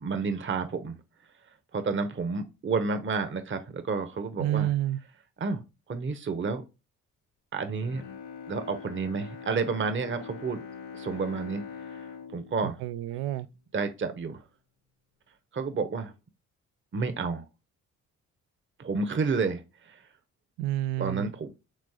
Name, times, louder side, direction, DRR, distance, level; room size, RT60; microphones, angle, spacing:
voice 1, 0.0-1.0 1.7-4.7 5.4-5.6 5.9-6.6 7.5-8.0 8.5-10.6 10.9-11.6 12.3-12.8 13.7-14.4 15.5-16.1 16.9-17.4 18.8-20.0 21.0-21.5, right 4 dB, 30° right, 0.8 m, -30 dB
voice 2, 4.4-5.0 12.6-13.5 20.6-21.3, right 13 dB, 75° right, 0.5 m, -29 dB
Bowed string instrument, 7.7-14.0 14.4-14.5, left 6 dB, 75° left, 0.9 m, -44 dB
3.7 x 3.2 x 3.5 m
hypercardioid pair, 45°, 38 cm